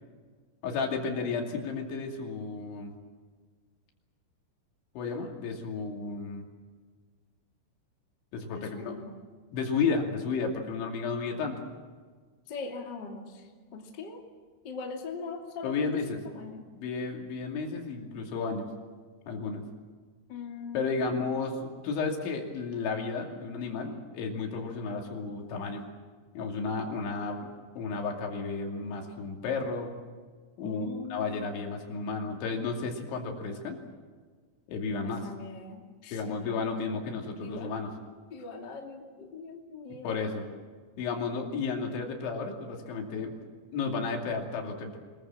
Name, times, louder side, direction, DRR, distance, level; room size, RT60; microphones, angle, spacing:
voice 1, 0.6-2.9 4.9-6.5 8.3-9.0 9.5-11.6 15.6-16.2 16.8-18.7 19.3-19.6 20.7-25.8 26.3-27.5 27.8-29.9 30.6-33.8 34.7-35.3 36.1-37.9 40.0-40.5 41.0-43.3 43.7-45.0, left 4 dB, 70° left, 1 dB, 4.9 m, -32 dB
voice 2, 8.5-9.1 12.5-14.2 14.6-15.7 16.2-16.6 20.3-21.3 30.6-31.6 35.0-36.5 37.4-37.7 38.1-40.2, left 4 dB, 30° left, 1 dB, 2.2 m, -41 dB
25.0 x 21.5 x 7.6 m, 1.5 s
omnidirectional pair, 5.6 m